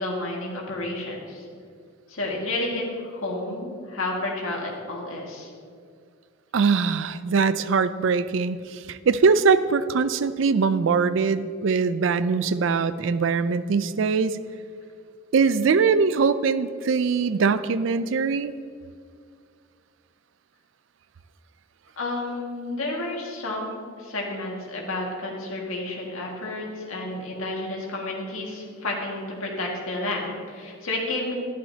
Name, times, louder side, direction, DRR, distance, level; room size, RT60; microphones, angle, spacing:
voice 1, 0.0-1.5 2.1-5.5 22.0-31.3, left 2 dB, 90° left, -2 dB, 1.9 m, -31 dB
voice 2, 6.5-8.6 8.9-14.4 15.3-18.5, right 5 dB, 65° right, 14 dB, 0.4 m, -22 dB
11.5 x 11.0 x 2.8 m, 2.1 s
head